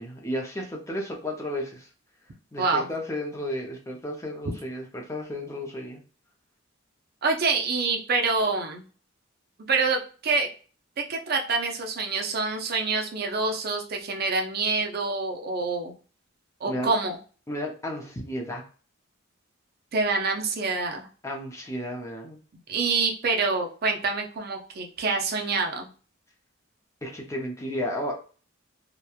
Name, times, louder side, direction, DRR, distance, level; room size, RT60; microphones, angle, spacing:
voice 1, 0.0-1.9 2.5-6.0 16.7-16.9 17.5-18.6 21.2-22.4 27.0-28.1, left 1 dB, 15° left, 0 dB, 0.5 m, -33 dB
voice 2, 7.2-8.9 9.7-10.5 11.1-15.9 16.6-17.2 19.9-21.1 22.7-25.9, right 4 dB, 45° right, 2 dB, 0.5 m, -26 dB
2.9 x 2.2 x 2.3 m, 0.38 s
head